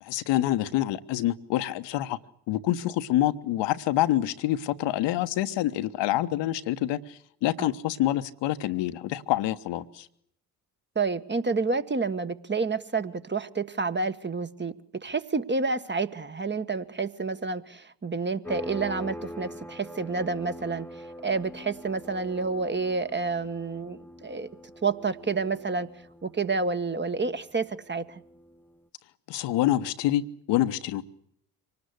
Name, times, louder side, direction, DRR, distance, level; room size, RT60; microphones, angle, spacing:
voice 1, 0.0-2.2 2.5-10.1 29.3-30.2 30.5-31.0, left 14 dB, 60° left, 1.2 m, -26 dB
voice 2, 10.9-20.9 21.2-24.5 24.8-25.9 26.2-28.2, right 4 dB, 20° right, 1.5 m, -29 dB
sound 1, 18.4-28.8, left 1 dB, 5° left, 0.9 m, -44 dB
25.5 x 19.0 x 8.2 m
figure-of-eight pair, 45°, 48 cm